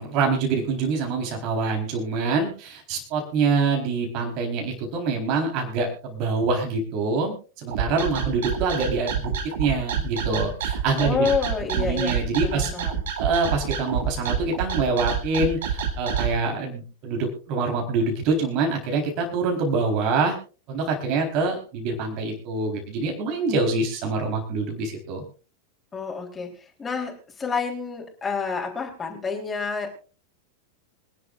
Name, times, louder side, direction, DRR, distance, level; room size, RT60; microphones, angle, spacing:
voice 1, 0.0-9.3 9.6-11.3 11.7-12.7 13.2-20.4 20.7-25.2, right 4 dB, 40° right, 2 dB, 4.2 m, -25 dB
sound 1, 7.7-16.3, right 8 dB, 60° right, 2.6 m, -27 dB
voice 2, 11.0-12.1 12.4-13.0 25.9-29.9, left 5 dB, 15° left, 0 dB, 3.8 m, -28 dB
25.5 x 11.0 x 2.5 m, 0.36 s
figure-of-eight pair, 90°, 0 cm